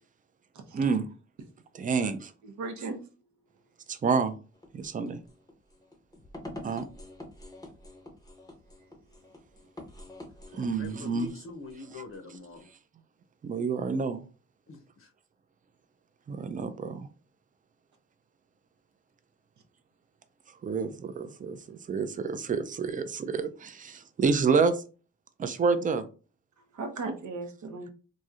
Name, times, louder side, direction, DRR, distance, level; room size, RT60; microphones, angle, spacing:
voice 1, 0.7-1.1 1.8-2.2 3.9-4.4 4.7-5.2 6.6-6.9 10.5-11.3 13.4-14.2 16.3-17.1 20.6-24.8 25.4-26.1, right 5 dB, 30° right, 0.4 m, -28 dB
voice 2, 2.4-3.0 26.7-27.9, right 3 dB, 70° right, 0.7 m, -36 dB
sound 1, 4.5-12.7, left 1 dB, 10° left, 0.7 m, -47 dB
voice 3, 10.5-12.7 14.7-15.1, left 2 dB, 45° left, 0.6 m, -44 dB
3.0 x 2.6 x 2.4 m
cardioid pair, 90°, 30 cm